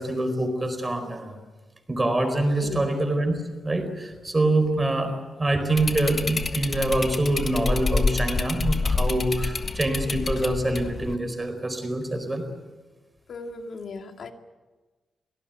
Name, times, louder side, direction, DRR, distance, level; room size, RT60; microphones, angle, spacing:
voice 1, 0.0-1.4 1.9-3.3 3.6-12.5, right 1 dB, 20° right, 7 dB, 4.4 m, -25 dB
voice 2, 2.5-2.9 13.3-14.3, left 4 dB, 60° left, 5 dB, 2.2 m, -36 dB
sound 1, 5.8-11.2, left 3 dB, 35° left, 1.5 m, -27 dB
24.0 x 18.0 x 9.2 m, 1.3 s
wide cardioid pair, 140°, 0 cm